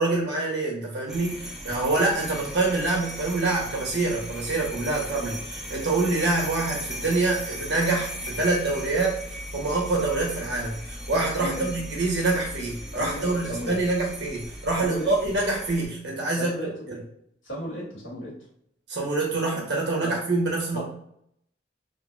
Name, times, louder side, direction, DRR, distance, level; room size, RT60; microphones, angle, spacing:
voice 1, 0.0-17.0 18.9-20.8, right 2 dB, 65° right, -2 dB, 1.1 m, -26 dB
sound 1, 1.1-15.9, equal, 5° right, 0.4 m, -38 dB
voice 2, 11.4-11.7 12.9-13.8 14.8-15.1 16.4-16.9 17.4-18.5 20.0-20.2 20.7-20.8, equal, 90° left, -5 dB, 1.4 m, -34 dB
3.8 x 2.1 x 2.5 m, 0.71 s
head